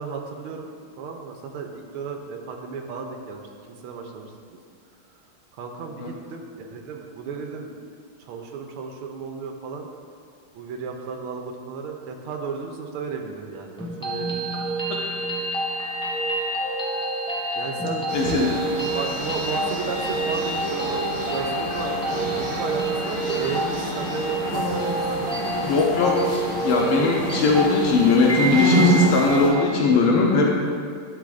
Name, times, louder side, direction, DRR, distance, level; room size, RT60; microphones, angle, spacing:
voice 1, 0.0-3.4 3.7-4.6 5.5-7.9 8.2-9.9 10.5-14.4 17.5-25.7 25.9-26.2, right 5 dB, 85° right, 3 dB, 1.6 m, -34 dB
sound 1, 13.8-29.8, right 2 dB, 5° left, 0.7 m, -28 dB
voice 2, 18.1-18.5 25.6-26.2 26.6-30.5, left 4 dB, 80° left, -1 dB, 1.7 m, -19 dB
sound 2, 18.1-29.5, equal, 50° left, 2.6 m, -28 dB
11.5 x 7.2 x 2.5 m, 2.3 s
omnidirectional pair, 2.3 m